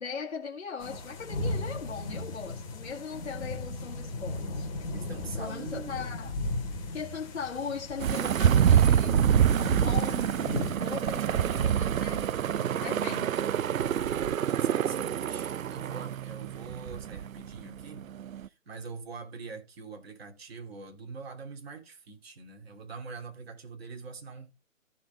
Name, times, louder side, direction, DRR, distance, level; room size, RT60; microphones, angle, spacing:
voice 1, 0.0-4.7 5.3-6.3 6.9-9.2 9.7-12.3 12.8-13.3, left 6 dB, 60° left, 1.9 m, -39 dB
sound 1, 0.8-10.7, left 2 dB, 25° left, 2.4 m, -36 dB
voice 2, 4.9-6.4 12.4-12.8 13.7-18.1 18.4-24.5, right 4 dB, 50° right, 3.0 m, -44 dB
sound 2, 8.0-18.5, right 9 dB, 75° right, 0.6 m, -26 dB
14.5 x 5.6 x 3.5 m
hypercardioid pair, 160°, 40 cm